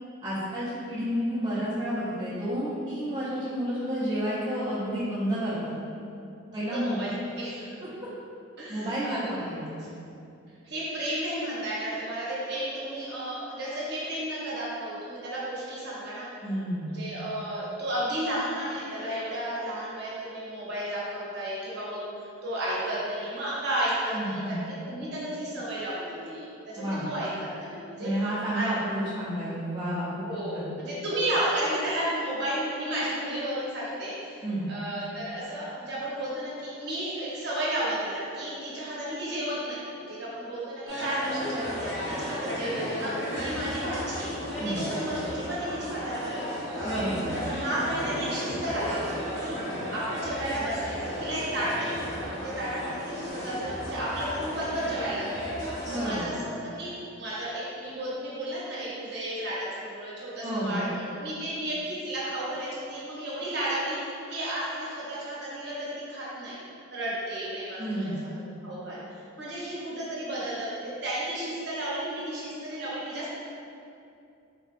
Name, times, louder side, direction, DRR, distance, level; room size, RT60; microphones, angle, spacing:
voice 1, 0.2-5.7 6.5-7.1 8.7-9.7 16.4-16.9 24.1-24.6 26.8-27.1 28.0-30.3 30.5-30.7 34.4-34.7 44.6-44.8 46.8-47.3 55.9-56.3 60.4-60.9 67.8-68.2, equal, 20° right, -12 dB, 0.5 m, -30 dB
voice 2, 6.7-7.7 8.6-9.9 10.6-16.3 16.8-27.3 27.6-28.1 28.5-28.7 30.2-44.3 44.6-46.6 47.3-49.5 49.9-55.3 55.9-56.9 57.2-66.6 66.9-68.1 68.6-73.3, right 1 dB, 55° right, -8 dB, 0.8 m, -33 dB
sound 1, 40.9-56.2, equal, 55° left, 0.7 m, -34 dB
3.6 x 2.2 x 2.4 m, 2.6 s
head